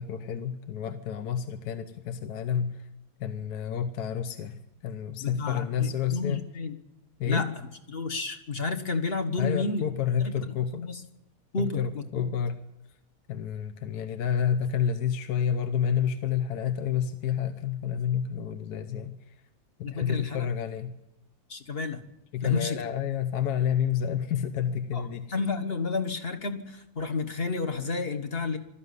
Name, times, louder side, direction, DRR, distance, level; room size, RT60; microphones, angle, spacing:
voice 1, 0.0-2.9 3.2-6.4 7.2-7.4 9.4-10.9 11.6-12.6 13.3-19.3 19.8-20.9 22.3-25.3, left 8 dB, 70° left, 9 dB, 1.4 m, -29 dB
voice 2, 5.2-6.7 7.2-9.8 10.2-11.0 11.5-12.3 19.8-20.4 21.5-22.0 22.4-22.8 24.9-28.6, left 4 dB, 35° left, 7 dB, 1.7 m, -31 dB
20.0 x 13.5 x 9.6 m, 0.93 s
omnidirectional pair, 1.8 m